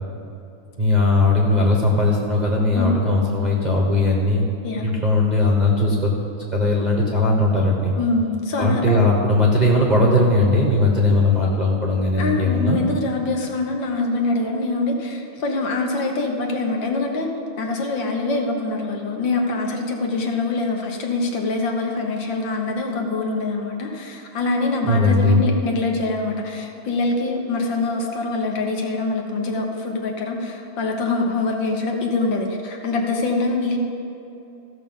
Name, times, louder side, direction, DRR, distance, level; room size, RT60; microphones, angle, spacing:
voice 1, 0.8-4.4 4.8-6.1 6.5-7.9 8.6-12.8 24.8-25.4, left 2 dB, 25° right, -3 dB, 1.1 m, -18 dB
voice 2, 2.8-3.2 4.6-4.8 8.0-9.0 12.2-17.3 17.6-33.8, left 3 dB, 65° left, 2 dB, 1.7 m, -24 dB
15.0 x 6.5 x 5.5 m, 2.8 s
omnidirectional pair, 2.3 m